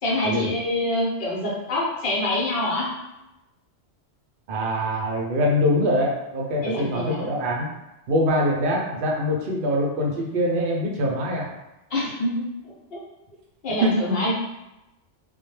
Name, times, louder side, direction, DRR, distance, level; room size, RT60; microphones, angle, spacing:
voice 1, 0.0-2.9 6.6-7.3 11.9-12.3 12.9-13.0 13.6-14.3, left 1 dB, 60° left, -5 dB, 0.9 m, -25 dB
voice 2, 4.5-7.7 8.1-11.5 12.3-12.5 13.8-14.2, equal, 60° right, -1 dB, 0.6 m, -23 dB
2.1 x 2.1 x 3.1 m, 0.94 s
omnidirectional pair, 1.2 m